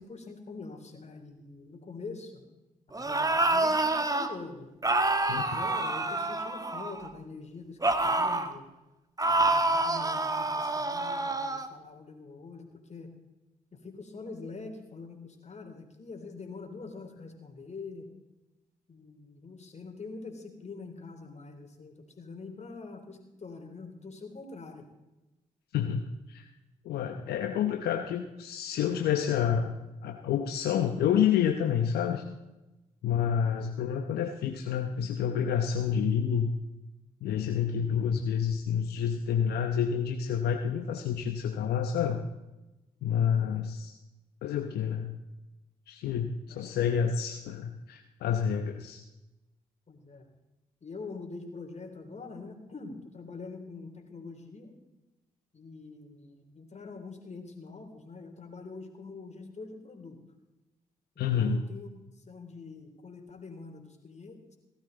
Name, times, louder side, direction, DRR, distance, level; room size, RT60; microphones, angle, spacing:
voice 1, 0.0-2.4 2.9-4.7 5.4-8.7 9.3-13.1 13.7-18.1 18.9-24.9 46.5-46.7 49.9-50.3 50.8-54.7 55.5-60.2 61.1-64.6, left 4 dB, 45° left, 5 dB, 3.4 m, -44 dB
sound 1, 2.9-4.3 4.8-7.1 7.8-8.5 9.2-11.7, right 2 dB, 20° right, 1.5 m, -27 dB
voice 2, 26.8-29.7 30.0-32.2 33.0-36.5 37.2-42.2 43.0-43.9 44.4-45.1 45.9-49.0 61.2-61.6, left 8 dB, 75° left, 5 dB, 0.9 m, -28 dB
16.5 x 13.0 x 3.9 m, 1.0 s
hypercardioid pair, 45°, 17 cm